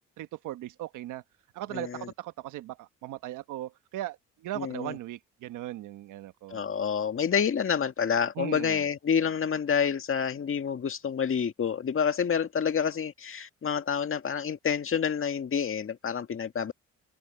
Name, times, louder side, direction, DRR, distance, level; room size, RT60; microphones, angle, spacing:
voice 1, 0.2-1.2 1.5-6.6 8.4-8.8, right 14 dB, 90° right, 1.3 m, -38 dB
voice 2, 1.7-2.1 4.6-4.9 6.5-16.7, left 7 dB, 45° left, 1.9 m, -28 dB
cardioid pair, 90°, 30 cm